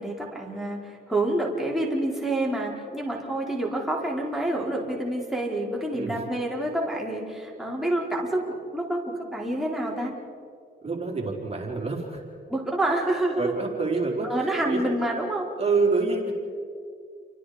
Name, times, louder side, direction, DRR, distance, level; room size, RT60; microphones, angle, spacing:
voice 1, 0.0-10.1 12.5-13.5 14.2-15.5, right 1 dB, ahead, -3 dB, 4.7 m, -28 dB
voice 2, 10.8-12.2 13.4-14.9 15.6-16.3, right 4 dB, 30° right, -1 dB, 4.4 m, -27 dB
29.5 x 24.5 x 5.2 m, 2.3 s
cardioid pair, 80°, 20 cm